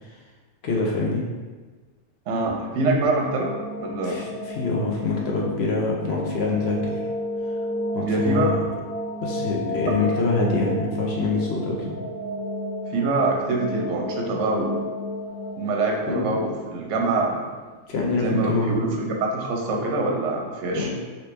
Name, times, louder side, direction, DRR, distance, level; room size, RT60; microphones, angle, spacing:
voice 1, 0.6-1.3 4.0-6.9 7.9-8.5 9.2-11.9 16.1-16.4 17.9-18.9 20.7-20.9, left 3 dB, 60° left, -2 dB, 0.7 m, -25 dB
voice 2, 2.3-3.5 3.8-4.2 8.0-8.5 12.9-14.9 15.6-17.4 18.2-20.9, right 2 dB, 65° right, 0 dB, 0.8 m, -24 dB
sound 1, 3.0-17.8, equal, 15° left, 0.8 m, -32 dB
3.1 x 2.8 x 3.2 m, 1.3 s
omnidirectional pair, 1.5 m